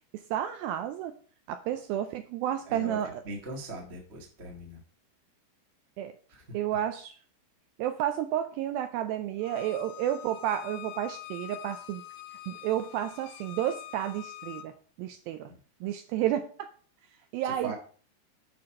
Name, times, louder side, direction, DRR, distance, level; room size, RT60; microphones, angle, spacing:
voice 1, 0.1-1.2 1.5-3.2 6.0-6.2 6.5-7.2 7.8-12.0 12.5-15.5 15.8-16.7 17.3-17.7, right 11 dB, 80° right, 9 dB, 2.1 m, -31 dB
voice 2, 2.6-4.8 6.3-6.6 15.5-15.6 17.4-17.7, right 2 dB, 50° right, 0 dB, 0.8 m, -40 dB
Bowed string instrument, 9.4-14.7, left 14 dB, 80° left, 2.7 m, -45 dB
8.5 x 5.9 x 4.3 m, 0.42 s
omnidirectional pair, 4.6 m